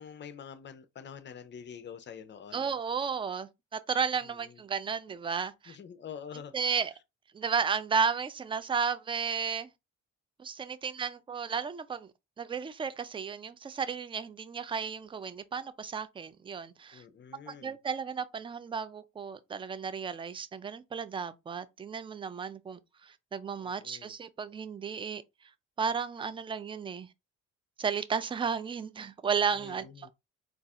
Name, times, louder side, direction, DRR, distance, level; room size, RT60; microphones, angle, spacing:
voice 1, 0.0-2.8 4.2-4.6 5.7-6.8 16.9-17.8 23.6-24.1 29.5-30.1, left 7 dB, 40° left, 0.5 m, -47 dB
voice 2, 2.5-5.8 6.5-6.9 7.3-9.7 10.4-12.1 12.4-17.0 17.5-25.2 25.8-27.1 27.8-30.1, right 6 dB, 20° right, 0.3 m, -33 dB
3.9 x 2.4 x 2.4 m
cardioid pair, 90°, 30 cm